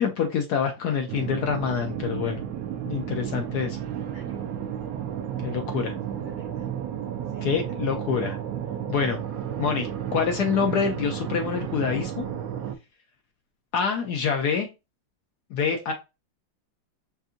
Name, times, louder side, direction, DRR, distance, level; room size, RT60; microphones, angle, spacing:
voice 1, 0.0-2.4 2.9-3.8 5.4-5.9 7.4-8.4 8.9-9.2 9.6-12.3 13.7-14.7 15.5-15.9, left 6 dB, 70° left, 4 dB, 1.0 m, -26 dB
sound 1, 1.1-12.7, right 9 dB, 85° right, 0.7 m, -32 dB
voice 2, 3.1-4.6 5.7-6.7 7.3-7.5, right 5 dB, 45° right, 0 dB, 0.8 m, -52 dB
5.4 x 2.5 x 2.5 m, 0.26 s
omnidirectional pair, 2.1 m